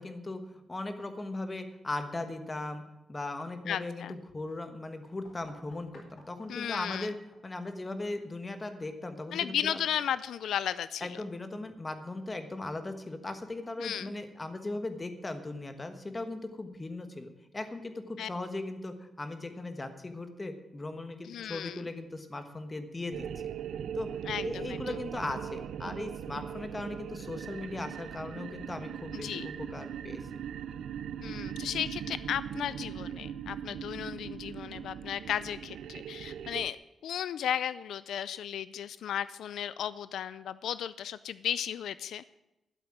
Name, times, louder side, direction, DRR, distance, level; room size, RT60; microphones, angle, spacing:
voice 1, 0.0-2.8 3.1-7.1 7.4-9.8 11.0-23.3 23.9-24.1 24.4-30.2, left 2 dB, 15° left, 8 dB, 1.3 m, -38 dB
voice 2, 3.7-4.1 6.5-7.1 9.3-11.2 13.8-14.1 18.2-18.3 21.2-21.8 24.3-24.8 29.2-29.5 31.2-42.2, left 9 dB, 80° left, 16 dB, 0.4 m, -35 dB
sound 1, 5.2-10.8, left 2 dB, 55° left, 4.2 m, -62 dB
sound 2, 23.1-36.7, right 9 dB, 80° right, 0.5 m, -40 dB
12.5 x 7.9 x 9.0 m, 0.95 s
wide cardioid pair, 165°, 0 cm